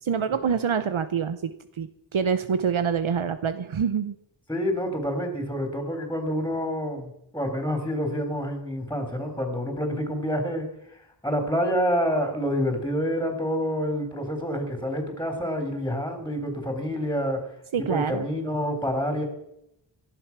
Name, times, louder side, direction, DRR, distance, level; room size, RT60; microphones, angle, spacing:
voice 1, 0.0-4.1 17.7-18.3, right 7 dB, 85° right, 11 dB, 0.9 m, -26 dB
voice 2, 4.5-10.7 11.2-17.4 17.8-19.3, equal, 5° left, 5 dB, 3.8 m, -27 dB
17.5 x 11.5 x 6.0 m, 0.79 s
wide cardioid pair, 55°, 46 cm